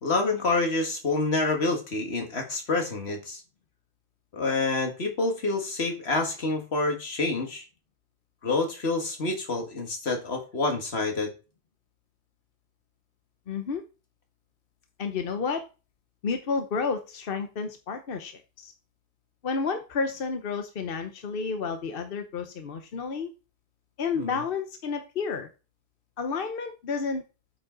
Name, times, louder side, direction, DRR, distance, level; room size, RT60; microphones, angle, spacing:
voice 1, 0.0-3.4 4.3-7.6 8.4-11.3 24.2-24.3, left 3 dB, 85° left, 3 dB, 2.0 m, -27 dB
voice 2, 13.5-13.8 15.0-15.6 16.2-18.7 19.4-23.3 24.0-25.5 26.2-27.2, left 5 dB, 65° left, 6 dB, 1.1 m, -31 dB
8.5 x 5.1 x 3.8 m, 0.31 s
omnidirectional pair, 1.0 m